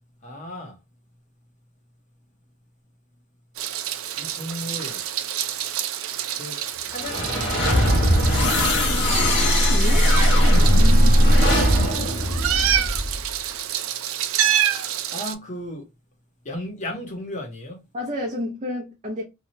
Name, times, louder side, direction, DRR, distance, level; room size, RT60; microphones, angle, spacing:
voice 1, 0.2-0.8 4.2-5.0 6.3-7.9 10.8-11.0 14.8-15.9 16.4-17.9, left 1 dB, 35° left, 0.9 m, -35 dB
Meow, 3.6-15.3, right 10 dB, 70° right, 0.4 m, -27 dB
sound 1, 6.9-13.2, equal, 60° left, 1.0 m, -18 dB
voice 2, 9.7-10.1 10.5-11.4 17.9-19.2, left 1 dB, 30° right, 0.7 m, -31 dB
2.8 x 2.3 x 2.8 m
head